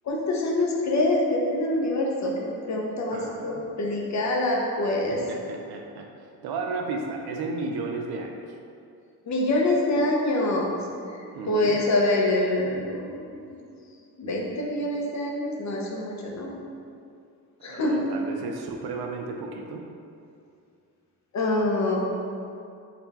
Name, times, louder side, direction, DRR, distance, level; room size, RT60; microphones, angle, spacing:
voice 1, 0.0-5.2 9.3-10.8 11.5-13.6 14.2-16.5 17.6-18.1 21.3-22.0, left 1 dB, 45° left, -1 dB, 0.7 m, -25 dB
voice 2, 3.1-3.6 5.1-6.1 6.4-8.4 11.2-11.8 17.6-19.8, right 3 dB, 80° right, 2 dB, 0.6 m, -33 dB
4.1 x 2.3 x 4.0 m, 2.5 s
cardioid pair, 105°, 38 cm